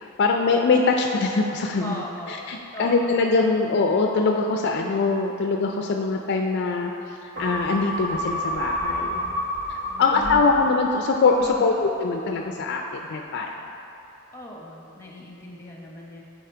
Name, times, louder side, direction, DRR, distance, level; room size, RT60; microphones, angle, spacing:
voice 1, 0.2-2.0 2.3-6.9 7.2-9.3 9.7-13.5, left 4 dB, 50° left, 2 dB, 0.4 m, -23 dB
voice 2, 1.8-2.4 2.7-3.2 9.8-10.5 11.4-11.8 14.3-16.2, left 1 dB, 10° left, -2 dB, 0.9 m, -38 dB
sound 1, 7.3-12.0 12.4-12.5, equal, 60° right, 1.5 m, -30 dB
8.5 x 4.1 x 4.5 m, 2.8 s
head